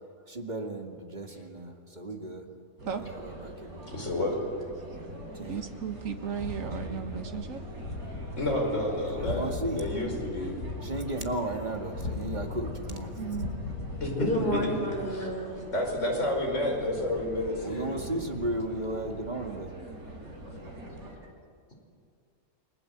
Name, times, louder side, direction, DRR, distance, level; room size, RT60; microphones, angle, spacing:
voice 1, 0.3-2.5 2.9-3.9 5.3-5.6 9.1-9.8 10.8-13.2 17.6-19.7, right 1 dB, 30° right, 3 dB, 2.2 m, -35 dB
sound 1, 2.8-21.2, right 1 dB, 90° right, 4.8 m, -43 dB
voice 2, 3.9-4.4 8.4-9.5 9.8-10.6 14.0-14.8 15.1-15.3 15.7-18.1, left 1 dB, 55° left, 0 dB, 5.6 m, -30 dB
voice 3, 5.5-7.6 13.2-13.5, right 7 dB, 65° right, 6 dB, 1.9 m, -35 dB
sound 2, 6.0-14.7, left 3 dB, 85° left, 1.9 m, -39 dB
voice 4, 14.2-15.7 17.1-17.2 17.7-17.8 20.2-20.6 21.0-21.1, equal, 40° left, 1 dB, 4.8 m, -32 dB
29.0 x 21.5 x 8.0 m, 2.2 s
omnidirectional pair, 1.5 m